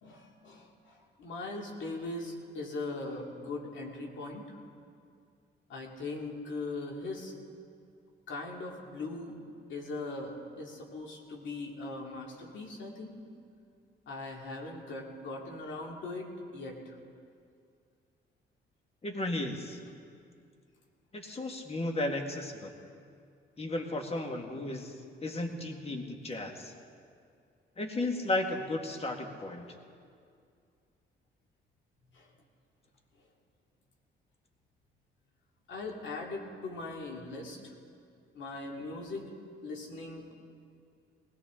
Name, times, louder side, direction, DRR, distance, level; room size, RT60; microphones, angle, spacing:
voice 1, 0.0-4.6 5.7-7.3 8.3-9.4 9.7-13.2 14.1-17.0 32.1-32.3 35.7-37.7 38.3-39.4 39.6-40.3, left 2 dB, 70° left, 0 dB, 2.5 m, -40 dB
voice 2, 19.0-19.8 21.1-22.7 23.6-24.9 25.2-26.7 27.8-29.7, left 2 dB, 30° left, 3 dB, 1.8 m, -34 dB
19.5 x 17.0 x 3.8 m, 2.3 s
cardioid pair, 90°, 20 cm